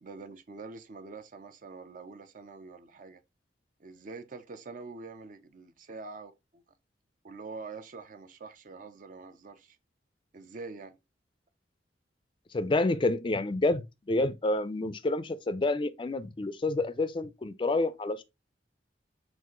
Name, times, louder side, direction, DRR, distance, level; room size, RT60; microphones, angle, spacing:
voice 1, 0.0-3.2 3.8-6.6 7.2-9.8 10.3-11.0, right 3 dB, 45° right, 0.5 m, -45 dB
voice 2, 12.5-13.8 14.1-18.2, left 2 dB, 30° left, 0.4 m, -28 dB
6.0 x 2.5 x 3.0 m
head